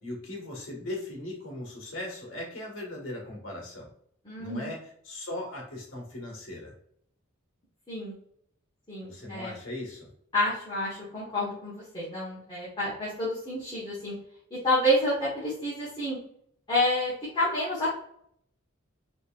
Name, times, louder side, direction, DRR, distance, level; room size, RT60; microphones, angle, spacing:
voice 1, 0.0-3.9 4.4-4.8 5.0-6.7 9.0-10.1, left 1 dB, 75° left, -2 dB, 1.6 m, -38 dB
voice 2, 4.2-4.7 7.9-8.1 8.9-9.6 10.3-14.1 14.5-16.2 16.7-18.0, left 1 dB, 25° left, -8 dB, 1.2 m, -29 dB
4.1 x 3.2 x 2.4 m, 0.67 s
head